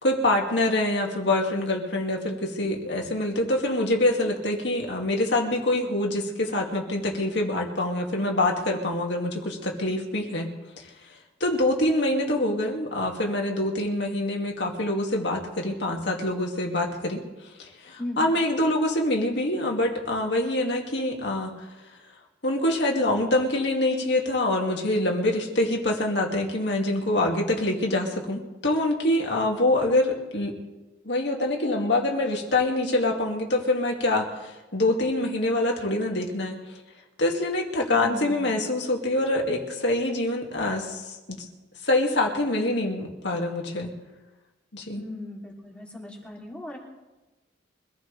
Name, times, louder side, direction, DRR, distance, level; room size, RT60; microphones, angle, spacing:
voice 1, 0.0-10.5 10.8-10.9 11.4-17.2 17.6-21.7 22.4-30.5 31.0-36.6 37.2-41.4 41.8-43.9 44.7-45.1, left 1 dB, 65° left, 0 dB, 2.5 m, -25 dB
voice 2, 18.0-18.3 37.9-38.6 44.9-46.8, left 1 dB, 5° left, -4 dB, 3.3 m, -38 dB
24.5 x 15.5 x 3.5 m, 1.1 s
head